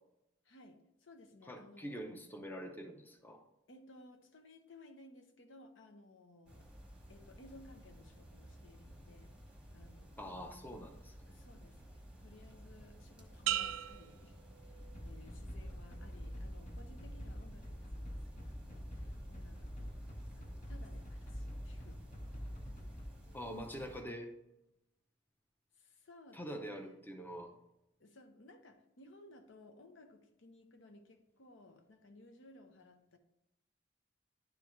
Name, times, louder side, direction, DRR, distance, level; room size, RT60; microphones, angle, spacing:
voice 1, 0.4-2.3 3.7-6.7 7.1-9.3 9.7-10.5 11.3-20.0 20.3-22.4 23.0-23.6 25.7-27.0 28.0-33.2, left 2 dB, 85° left, 6 dB, 0.8 m, -59 dB
voice 2, 1.5-3.4 10.2-11.3 23.3-24.3 26.3-27.5, equal, 10° left, 4 dB, 0.6 m, -45 dB
sound 1, 6.5-24.0, equal, 5° right, 1.1 m, -55 dB
sound 2, 13.5-15.2 15.7-16.2, right 12 dB, 90° right, 0.3 m, -39 dB
sound 3, 14.7-23.1, equal, 40° left, 1.0 m, -46 dB
10.5 x 3.6 x 3.1 m, 0.86 s
head